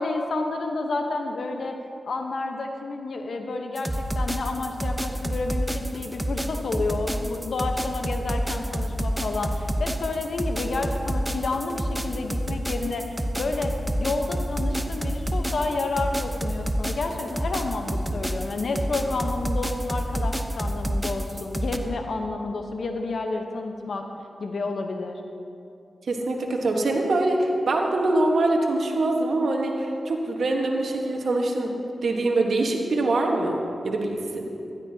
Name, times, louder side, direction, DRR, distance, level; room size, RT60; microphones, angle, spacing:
voice 1, 0.0-1.8 2.0-13.7 14.0-24.0 24.4-25.2, left 3 dB, 70° left, 4 dB, 1.0 m, -30 dB
sound 1, 3.8-21.8, equal, 10° right, 0.9 m, -28 dB
voice 2, 26.1-31.8 32.0-34.5, right 2 dB, 75° right, 1 dB, 1.4 m, -24 dB
15.5 x 12.0 x 2.9 m, 2.6 s
cardioid pair, 40°, 0 cm